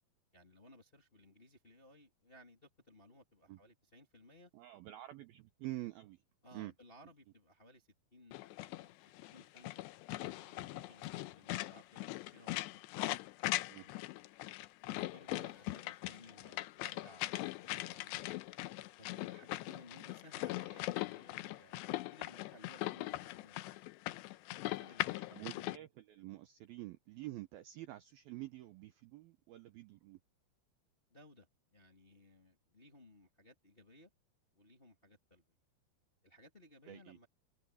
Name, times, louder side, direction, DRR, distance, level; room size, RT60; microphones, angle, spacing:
voice 1, 0.3-4.5 6.4-12.7 14.9-18.2 19.0-23.6 24.5-25.3 31.1-34.1 34.5-35.5 36.2-37.3, left 1 dB, 20° left, 1.4 m, -61 dB
voice 2, 4.5-6.2 6.5-6.7 13.7-13.9 25.3-30.2 36.9-37.2, right 16 dB, 85° right, 2.1 m, -47 dB
sound 1, 8.3-25.8, left 18 dB, 80° left, 2.6 m, -41 dB
omnidirectional pair, 5.6 m